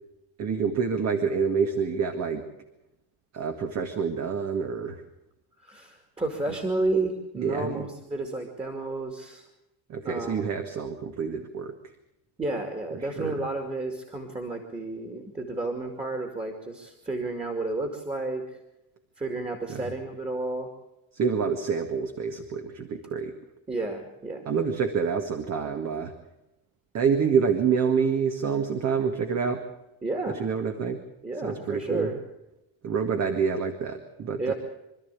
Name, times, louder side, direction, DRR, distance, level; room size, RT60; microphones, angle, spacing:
voice 1, 0.4-2.4 3.3-5.0 6.5-6.6 7.4-7.9 9.9-11.7 12.9-13.4 19.7-19.9 21.1-23.3 24.5-26.1 26.9-29.6 30.3-31.0 31.4-32.1 32.8-34.5, right 6 dB, 45° right, 6 dB, 2.0 m, -27 dB
voice 2, 5.6-9.4 10.0-10.4 12.4-18.4 19.2-20.7 23.7-24.4 30.0-30.4 31.2-32.2 34.4-34.5, right 2 dB, 15° right, 4 dB, 2.5 m, -31 dB
26.0 x 13.0 x 8.5 m, 0.91 s
cardioid pair, 145°, 38 cm